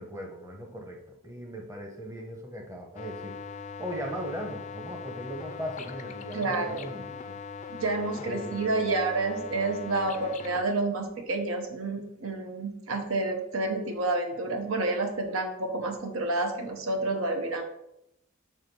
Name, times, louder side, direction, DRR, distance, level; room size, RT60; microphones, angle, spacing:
voice 1, 0.0-3.4 3.8-7.3 8.3-8.6, equal, 15° right, 1 dB, 0.9 m, -38 dB
sound 1, 3.0-10.7, left 6 dB, 35° left, 0.4 m, -40 dB
voice 2, 6.3-6.9 7.7-17.6, right 2 dB, 80° right, 4 dB, 0.9 m, -29 dB
6.5 x 3.4 x 5.3 m, 0.83 s
head